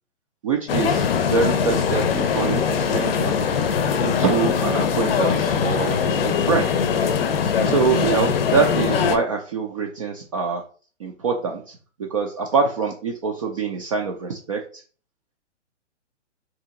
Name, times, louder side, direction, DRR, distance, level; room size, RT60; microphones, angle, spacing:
voice 1, 0.4-3.4 4.0-6.7 7.6-10.6 11.0-14.8, right 5 dB, 30° right, 2 dB, 0.4 m, -25 dB
sound 1, 0.7-9.2, left 6 dB, 55° left, 0.6 m, -21 dB
2.8 x 2.7 x 3.6 m, 0.41 s
figure-of-eight pair, 125°, 36 cm